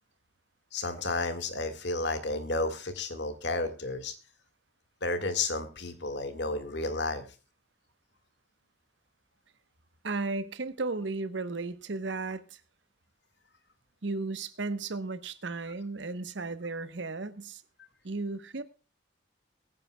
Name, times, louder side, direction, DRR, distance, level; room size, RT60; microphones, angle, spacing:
voice 1, 0.7-4.1 5.0-7.3, left 2 dB, 70° left, 1.7 m, -32 dB
voice 2, 10.0-12.6 14.0-17.6 18.0-18.6, right 3 dB, 80° right, 1.0 m, -34 dB
22.0 x 9.7 x 2.2 m
head